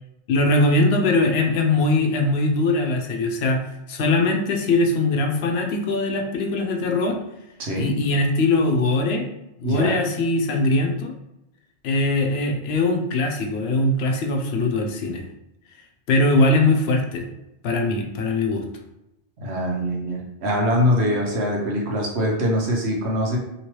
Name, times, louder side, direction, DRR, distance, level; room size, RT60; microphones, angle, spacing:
voice 1, 0.3-3.6 3.9-7.2 7.8-9.2 9.6-11.1 11.8-15.2 16.1-17.3 17.6-18.7, left 2 dB, 75° left, 3 dB, 0.8 m, -21 dB
voice 2, 9.6-9.9 19.4-23.4, equal, 85° right, -1 dB, 1.1 m, -23 dB
3.0 x 3.0 x 3.0 m, 0.88 s
omnidirectional pair, 1.1 m